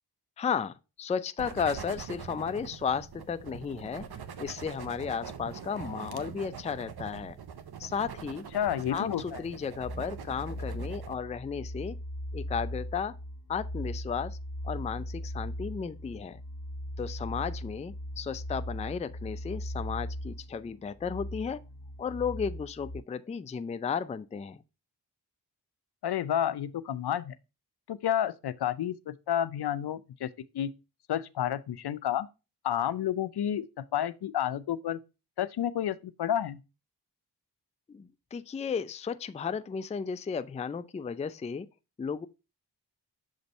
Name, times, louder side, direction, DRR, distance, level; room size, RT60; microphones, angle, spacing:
voice 1, 0.4-4.1 4.4-7.4 7.8-8.4 8.9-12.0 12.3-13.2 13.5-14.4 14.6-16.4 17.0-21.6 22.0-24.6 37.9-41.7 42.0-42.3, left 6 dB, 15° left, 0.3 m, -34 dB
sound 1, 1.4-11.1, right 7 dB, 65° right, 0.8 m, -43 dB
voice 2, 8.5-9.4 26.0-27.3 27.9-30.7 31.1-32.3 32.6-35.0 35.4-36.6, left 10 dB, 70° left, 0.5 m, -30 dB
sound 2, 9.8-23.0, equal, 55° left, 1.2 m, -39 dB
7.0 x 2.6 x 5.2 m
cardioid pair, 40°, 41 cm